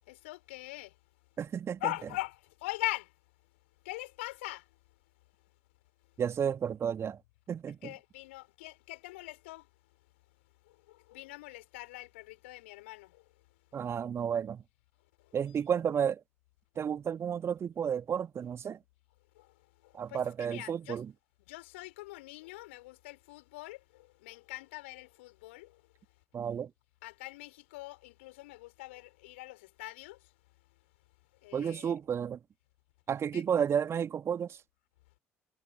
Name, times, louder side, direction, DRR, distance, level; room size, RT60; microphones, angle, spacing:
voice 1, 0.1-0.9 1.8-3.1 3.8-4.7 7.8-9.7 10.7-13.2 13.8-13.9 15.2-15.3 19.3-19.5 19.8-21.0 21.5-25.8 27.0-30.3 31.4-32.0 33.3-33.4, left 20 dB, 70° left, 6.3 m, -42 dB
voice 2, 1.4-1.9 6.2-7.2 7.5-7.9 13.7-14.6 15.3-16.2 16.8-18.8 19.9-21.1 26.3-26.7 31.5-32.4 33.1-34.6, right 8 dB, 40° right, 2.4 m, -32 dB
figure-of-eight pair, 50°, 7 cm